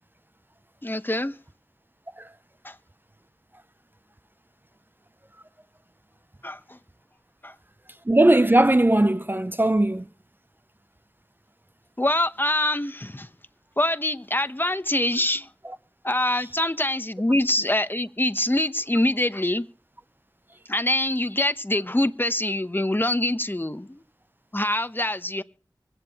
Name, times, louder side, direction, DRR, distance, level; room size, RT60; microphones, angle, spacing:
voice 1, 0.8-1.4 2.6-2.7 6.4-6.8 7.4-7.5 12.0-13.3 13.8-15.5 16.0-19.6 20.7-24.0 24.5-25.4, left 1 dB, 25° left, 0.9 m, -24 dB
voice 2, 8.1-10.0, right 1 dB, 25° right, 0.5 m, -19 dB
24.5 x 9.1 x 3.0 m
wide cardioid pair, 45°, 8 cm